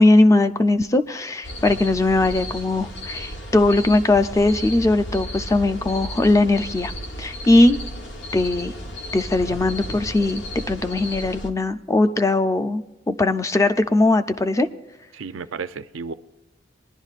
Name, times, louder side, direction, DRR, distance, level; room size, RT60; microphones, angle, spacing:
voice 1, 0.0-6.9 7.2-7.8 8.3-8.7 9.1-14.7, left 2 dB, 15° left, 0.4 m, -19 dB
sound 1, 1.4-11.5, equal, 65° left, 1.1 m, -34 dB
voice 2, 15.1-16.1, right 5 dB, 90° right, 0.5 m, -33 dB
21.0 x 11.0 x 2.4 m
head